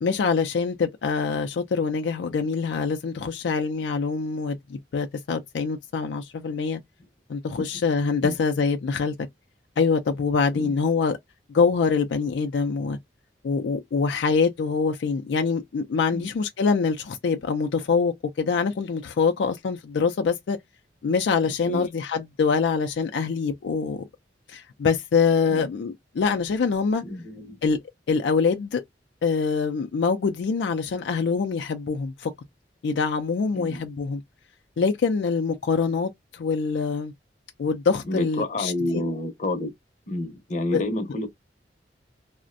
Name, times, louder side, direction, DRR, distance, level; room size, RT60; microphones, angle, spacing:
voice 1, 0.0-6.8 7.3-9.1 9.8-11.2 11.5-13.0 13.4-20.6 21.0-24.0 24.5-27.0 27.6-27.8 28.1-28.8 29.2-32.3 32.8-34.2 34.8-37.1 37.6-39.0 40.7-40.8, left 5 dB, 80° left, 0.4 m, -24 dB
voice 2, 27.0-27.6 33.5-33.8 38.0-39.7 40.1-41.3, left 1 dB, 45° left, 0.6 m, -29 dB
2.4 x 2.1 x 2.5 m
head